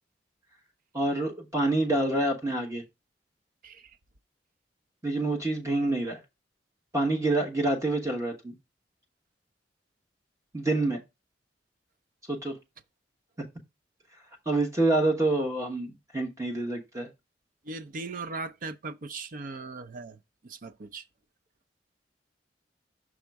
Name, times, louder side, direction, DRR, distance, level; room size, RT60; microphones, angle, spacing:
voice 1, 0.9-2.8 5.0-6.2 6.9-8.5 10.5-11.0 12.3-12.6 14.5-17.1, right 2 dB, 20° right, 1.1 m, -27 dB
voice 2, 17.6-20.2 20.4-21.0, right 3 dB, 50° right, 0.5 m, -38 dB
6.2 x 3.6 x 4.6 m
head